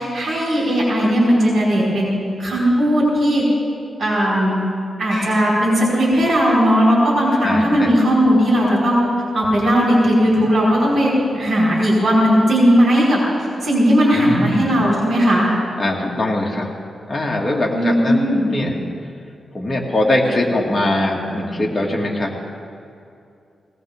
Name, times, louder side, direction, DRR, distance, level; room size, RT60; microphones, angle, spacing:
voice 1, 0.0-2.1 2.4-3.4 4.0-4.6 5.0-9.0 9.3-13.2 13.6-15.5 17.7-18.4, equal, 65° right, -6 dB, 4.5 m, -16 dB
voice 2, 7.4-7.9 14.1-14.8 15.8-16.7 17.1-18.8 19.5-22.3, left 1 dB, 25° left, -2 dB, 2.2 m, -21 dB
19.0 x 17.5 x 3.6 m, 2.5 s
cardioid pair, 95°, 0 cm